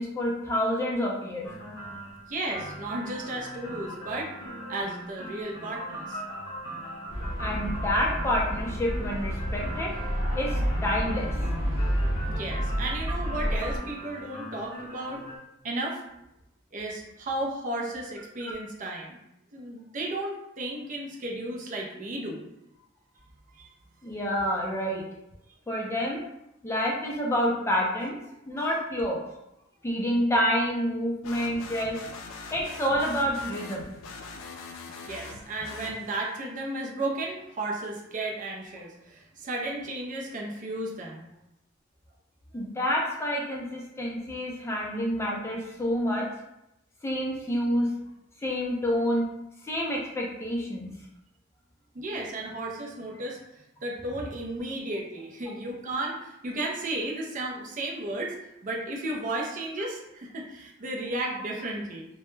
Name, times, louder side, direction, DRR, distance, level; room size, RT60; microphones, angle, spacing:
voice 1, 0.0-1.5 7.4-9.9 10.3-11.3 24.0-25.0 25.7-26.2 26.6-28.2 28.5-29.2 29.8-32.0 32.5-33.9 42.5-46.2 47.0-47.9 48.4-49.3 49.6-50.9, equal, 15° left, -3 dB, 0.4 m, -28 dB
sound 1, 1.4-15.4, equal, 55° left, 0.7 m, -40 dB
voice 2, 2.3-4.3 4.7-6.2 12.3-15.3 15.6-16.0 16.7-19.2 19.5-22.4 23.6-23.7 28.5-28.8 35.1-41.3 51.9-53.4 53.8-58.4 58.6-62.1, right 2 dB, 40° right, -1 dB, 0.5 m, -34 dB
sound 2, 7.1-13.8, equal, 80° right, 1.0 m, -29 dB
sound 3, 31.2-36.4, left 3 dB, 85° left, 0.3 m, -42 dB
2.2 x 2.0 x 3.0 m, 0.85 s
head